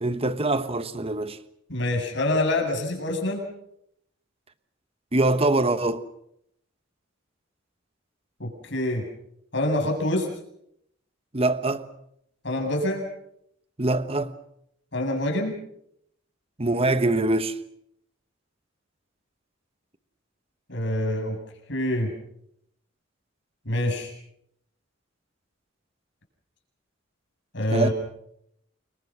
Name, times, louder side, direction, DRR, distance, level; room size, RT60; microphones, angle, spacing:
voice 1, 0.0-1.4 5.1-6.0 11.3-11.9 13.8-14.3 16.6-17.6 27.7-27.9, right 2 dB, 30° right, 1.2 m, -23 dB
voice 2, 1.7-3.5 8.4-9.1 9.5-10.3 12.4-13.1 14.9-15.5 20.7-21.4 21.7-22.1 23.6-24.1 27.5-27.9, left 1 dB, 60° left, 7.7 m, -26 dB
28.5 x 23.0 x 6.2 m
head